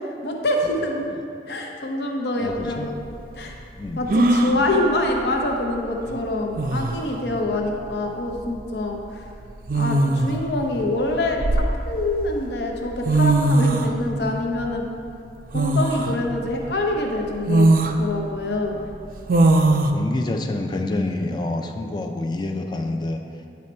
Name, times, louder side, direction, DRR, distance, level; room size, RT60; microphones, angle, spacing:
voice 1, 0.2-1.0 1.5-2.9 3.4-3.5 4.0-9.2 9.7-14.9 15.5-17.7 18.0-18.8, left 2 dB, 75° left, 1 dB, 0.7 m, -25 dB
voice 2, 2.4-2.9 3.8-4.1 10.1-10.2 13.9-14.1 16.1-16.3 19.9-23.2, left 2 dB, 25° left, 4 dB, 0.4 m, -28 dB
sound 1, 2.5-2.6 4.1-4.6 6.1-6.2 6.6-7.1 8.4-8.6 9.7-10.4 11.1-12.1 12.8-12.9 13.0-13.9 15.5-16.1 16.7-16.8 17.5-18.0 19.3-19.9, right 2 dB, 50° right, 0.4 m, -19 dB
9.5 x 4.2 x 4.3 m, 2.5 s
head